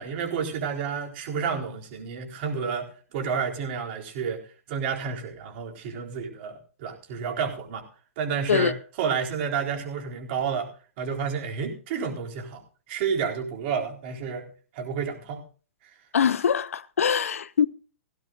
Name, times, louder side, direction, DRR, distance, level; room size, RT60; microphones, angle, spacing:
voice 1, 0.0-4.4 4.7-7.8 8.2-10.7 11.0-12.6 12.9-14.5 14.7-15.4, right 6 dB, 45° right, 4.0 m, -30 dB
voice 2, 16.1-17.7, left 7 dB, 70° left, 0.8 m, -23 dB
17.5 x 16.0 x 2.5 m
figure-of-eight pair, 110°, 8 cm